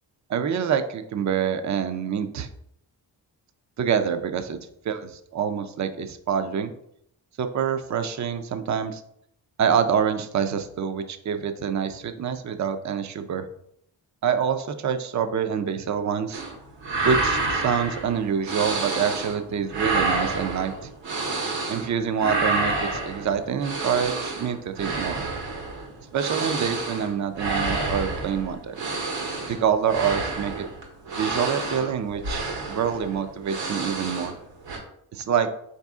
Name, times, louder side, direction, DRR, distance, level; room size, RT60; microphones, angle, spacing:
voice 1, 0.3-2.5 3.8-4.6 4.8-6.7 7.4-9.0 9.6-13.5 14.2-16.4 17.0-20.7 21.7-25.2 26.1-28.8 29.5-30.7 31.1-32.4 32.7-34.3 35.1-35.5, right 7 dB, 40° right, 8 dB, 0.5 m, -26 dB
sound 1, 16.3-16.5 16.8-19.4 19.7-21.9 22.2-34.4 34.6-34.8, right 3 dB, 80° right, 1.2 m, -29 dB
4.0 x 2.7 x 3.5 m, 0.72 s
supercardioid pair, 50°, 44 cm